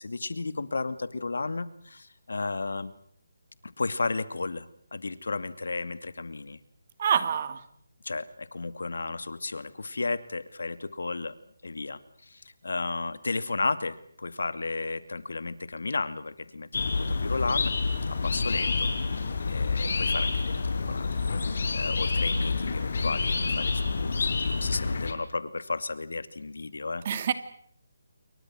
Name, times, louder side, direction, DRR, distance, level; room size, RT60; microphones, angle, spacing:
voice 1, 0.0-2.9 3.6-6.6 8.0-11.3 11.6-17.7 18.2-18.9 19.2-21.1 21.4-27.0, left 3 dB, 80° left, 14 dB, 2.4 m, -33 dB
voice 2, 7.0-7.6 27.0-27.3, right 8 dB, 35° right, 11 dB, 2.6 m, -26 dB
sound 1, 16.7-25.1, left 4 dB, 60° left, 5.2 m, -28 dB
29.0 x 23.5 x 6.3 m, 0.63 s
hypercardioid pair, 160°, 0 cm